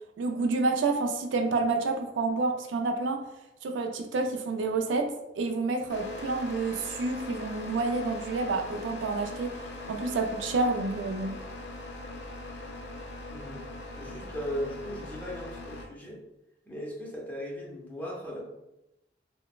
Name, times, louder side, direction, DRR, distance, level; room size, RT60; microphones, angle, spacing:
voice 1, 0.2-3.2 3.6-9.5 9.9-11.3, right 3 dB, 90° right, 4 dB, 0.3 m, -29 dB
sound 1, 5.9-15.9, left 2 dB, 65° left, 0.4 m, -41 dB
voice 2, 13.3-13.6 13.9-16.2 16.7-18.4, equal, 10° left, -4 dB, 0.5 m, -37 dB
3.1 x 2.0 x 2.2 m, 0.91 s
head